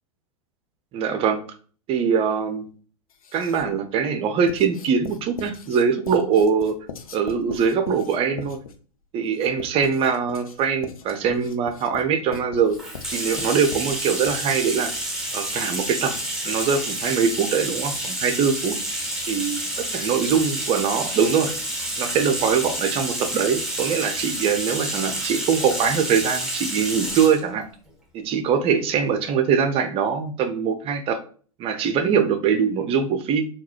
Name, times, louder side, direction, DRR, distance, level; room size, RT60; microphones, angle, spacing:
voice 1, 0.9-1.4 1.9-2.6 3.3-6.8 7.1-8.6 9.1-12.8 13.1-14.9 15.3-16.1 16.4-18.8 19.3-19.6 19.9-21.5 22.0-27.7 28.1-31.2 31.6-33.5, right 6 dB, 35° right, 8 dB, 0.6 m, -22 dB
Writing, 3.1-3.8 4.5-14.8, left 6 dB, 80° left, 0.5 m, -41 dB
Bathtub (filling or washing), 12.7-27.4, right 1 dB, 5° right, 1.1 m, -29 dB
3.7 x 2.4 x 3.0 m, 0.42 s
hypercardioid pair, 100°, 18 cm